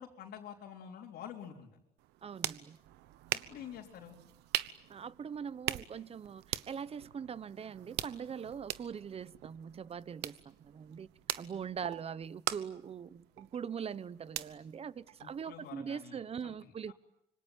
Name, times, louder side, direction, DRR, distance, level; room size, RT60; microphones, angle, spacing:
voice 1, 0.0-1.8 3.3-4.2 15.2-16.9, left 9 dB, 70° left, -2 dB, 3.8 m, -48 dB
sound 1, 2.0-15.7, right 15 dB, 90° right, 1.1 m, -42 dB
voice 2, 2.2-2.8 4.9-11.1 11.4-16.9, right 7 dB, 35° right, 18 dB, 1.0 m, -42 dB
26.5 x 25.0 x 9.1 m, 0.82 s
cardioid pair, 110°, 17 cm